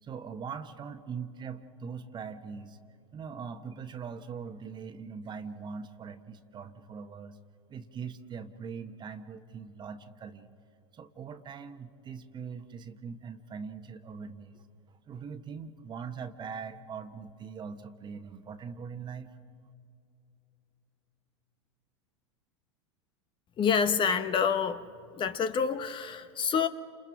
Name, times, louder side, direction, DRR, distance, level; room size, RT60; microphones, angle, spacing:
voice 1, 0.0-2.8 3.1-7.4 7.7-10.5 10.9-19.3, right 6 dB, 30° right, 9 dB, 1.3 m, -41 dB
voice 2, 23.6-24.8 25.1-26.7, left 6 dB, 30° left, 10 dB, 1.0 m, -27 dB
30.0 x 27.5 x 3.6 m, 2.7 s
hypercardioid pair, 90°, 16 cm